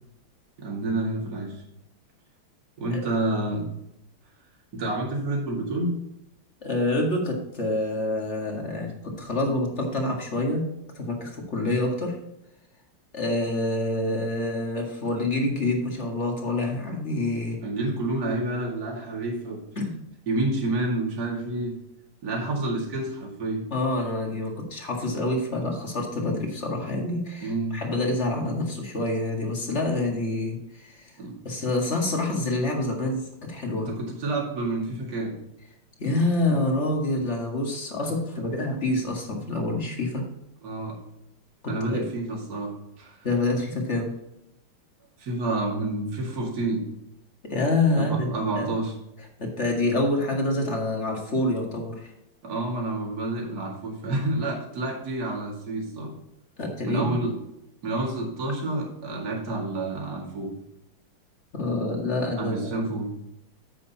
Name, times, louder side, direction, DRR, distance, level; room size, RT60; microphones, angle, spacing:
voice 1, 0.6-1.6 2.8-3.7 4.7-6.0 11.6-11.8 17.6-19.6 20.3-21.7 22.2-23.6 27.4-27.8 31.2-31.3 33.8-35.3 40.6-41.0 41.7-42.7 43.0-43.2 45.2-46.8 47.9-48.9 52.4-56.1 56.8-57.3 57.8-60.5 62.1-63.1, right 2 dB, 45° right, -2 dB, 2.6 m, -29 dB
voice 2, 6.6-10.6 10.9-12.2 13.1-17.6 19.8-20.0 23.7-31.1 31.4-33.9 36.0-40.3 41.6-42.0 43.2-44.1 47.4-48.7 49.4-52.1 56.6-57.1 61.5-62.9, left 2 dB, 35° left, 1 dB, 2.0 m, -27 dB
9.9 x 8.0 x 2.9 m, 0.86 s
omnidirectional pair, 2.3 m